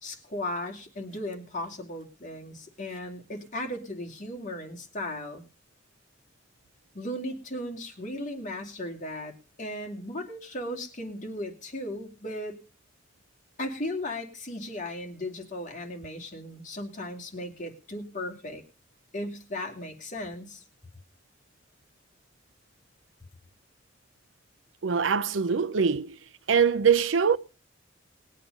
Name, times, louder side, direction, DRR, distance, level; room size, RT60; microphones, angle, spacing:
voice 1, 0.0-5.4 6.9-12.6 13.6-18.6 19.1-20.6, left 1 dB, 40° left, 2.5 m, -36 dB
voice 2, 24.8-26.2 26.5-27.4, right 6 dB, 80° right, 0.6 m, -23 dB
20.0 x 8.4 x 5.3 m
head